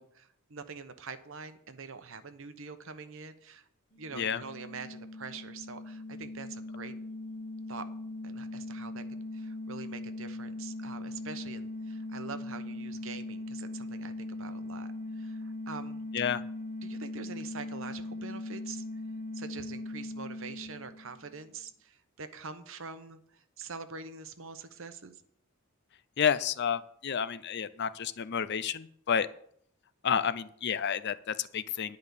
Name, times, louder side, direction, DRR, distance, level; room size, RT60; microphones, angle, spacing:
voice 1, 0.0-3.7 4.0-6.9 7.7-7.9 8.2-9.0 9.3-16.0 16.8-18.8 19.3-25.2, right 5 dB, 60° right, 10 dB, 0.9 m, -45 dB
sound 1, 3.9-21.4, left 2 dB, 30° left, 1.2 m, -40 dB
voice 2, 26.2-29.3 30.0-32.0, left 7 dB, 50° left, 14 dB, 0.5 m, -30 dB
10.5 x 5.3 x 8.1 m, 0.65 s
head